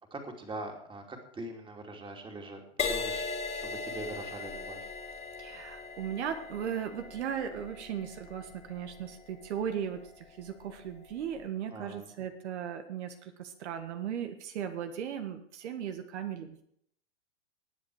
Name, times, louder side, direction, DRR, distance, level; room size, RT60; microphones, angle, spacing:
voice 1, 0.1-4.9 11.7-12.1, right 2 dB, 15° right, 2 dB, 2.8 m, -43 dB
Crash cymbal, 2.8-10.4 11.1-11.4, left 4 dB, 20° left, 2.5 m, -39 dB
voice 2, 5.4-16.6, right 8 dB, 65° right, 7 dB, 1.7 m, -37 dB
19.5 x 7.6 x 4.9 m, 0.67 s
hypercardioid pair, 120°, 36 cm